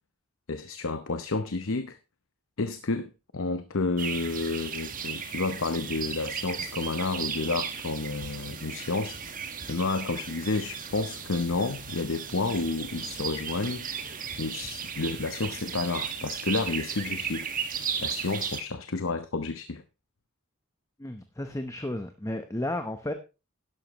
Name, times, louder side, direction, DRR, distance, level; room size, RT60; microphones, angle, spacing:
voice 1, 0.5-2.0 2.6-9.4 9.7-17.5 18.0-19.8, left 3 dB, 65° left, 0.8 m, -30 dB
sound 1, 4.0-18.6, right 7 dB, 40° right, 1.6 m, -36 dB
sound 2, 10.6-14.0, equal, 45° left, 1.9 m, -57 dB
voice 2, 21.0-23.1, left 1 dB, 15° left, 0.9 m, -33 dB
11.5 x 11.5 x 3.1 m
head